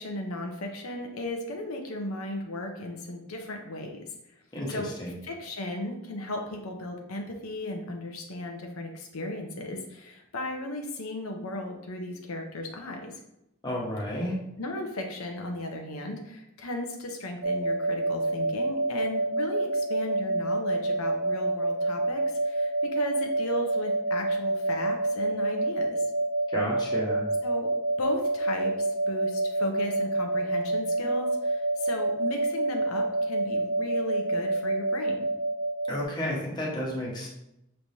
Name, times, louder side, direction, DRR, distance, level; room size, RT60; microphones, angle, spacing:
voice 1, 0.0-4.0 4.7-4.9 5.2-13.1 14.6-26.1 27.4-27.7 28.0-35.3, left 1 dB, 90° left, 2 dB, 0.8 m, -36 dB
voice 2, 13.6-14.3 26.5-27.3 35.9-37.3, equal, 20° left, -4 dB, 1.1 m, -31 dB
sound 1, 17.4-36.0, right 2 dB, 60° right, 0.6 m, -28 dB
6.0 x 3.3 x 2.7 m, 0.83 s
head